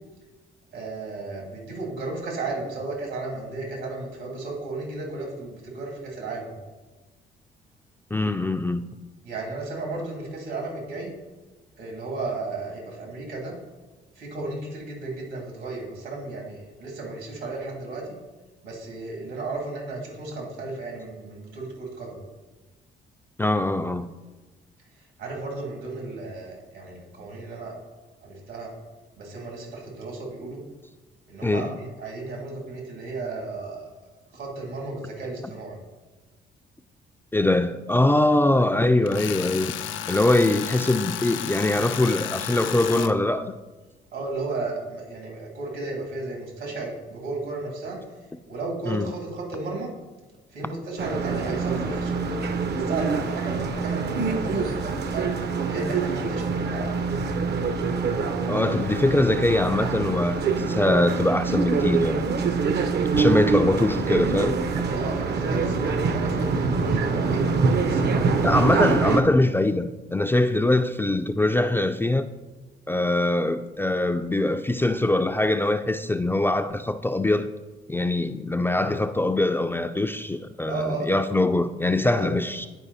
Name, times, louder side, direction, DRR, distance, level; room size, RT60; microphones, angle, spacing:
voice 1, 0.7-6.5 9.2-11.1 11.8-13.5 14.1-18.1 18.6-22.2 25.2-27.7 28.2-28.7 29.2-30.6 31.3-33.9 34.3-35.8 42.9-43.1 44.1-48.0 48.5-49.9 50.5-57.0 64.9-67.4 67.8-68.9 78.7-78.9 80.6-81.1 82.0-82.3, right 3 dB, 80° right, 2.8 m, -34 dB
voice 2, 8.1-8.9 23.4-24.1 31.4-31.7 37.3-39.7 40.1-43.5 48.9-49.1 58.5-62.2 63.1-64.6 68.4-72.3 72.9-77.5 77.9-82.7, left 2 dB, 10° left, 0.3 m, -22 dB
Tools, 39.1-43.1, left 10 dB, 80° left, 0.5 m, -32 dB
sound 1, 51.0-69.2, right 4 dB, 55° right, 0.7 m, -25 dB
9.9 x 4.8 x 4.1 m
cardioid pair, 90°, 20 cm